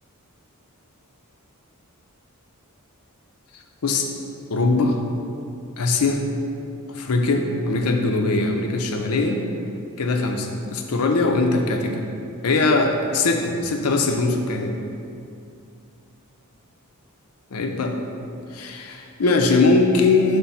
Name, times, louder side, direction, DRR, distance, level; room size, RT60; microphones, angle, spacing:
voice 1, 4.5-5.0 5.8-6.2 6.9-9.4 10.0-12.0 12.4-14.8 17.5-18.0 18.5-20.4, left 3 dB, 75° left, 4 dB, 0.6 m, -21 dB
5.8 x 3.3 x 5.5 m, 2.5 s
head